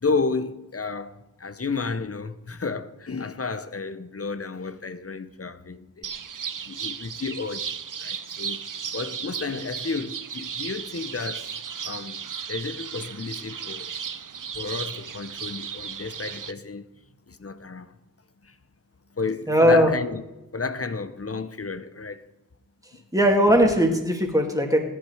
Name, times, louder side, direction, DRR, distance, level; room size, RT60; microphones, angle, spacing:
voice 1, 0.0-6.1 6.6-8.6 8.9-11.6 11.8-12.2 12.5-13.9 14.5-16.9 17.3-17.9 18.4-18.6 19.1-20.2 20.5-22.3, left 4 dB, 45° left, 0.8 m, -32 dB
sound 1, 6.0-16.5, right 7 dB, 70° right, 0.7 m, -35 dB
voice 2, 19.5-19.9 23.1-24.8, equal, 10° right, 2.3 m, -19 dB
16.0 x 11.0 x 4.8 m
wide cardioid pair, 65°, 33 cm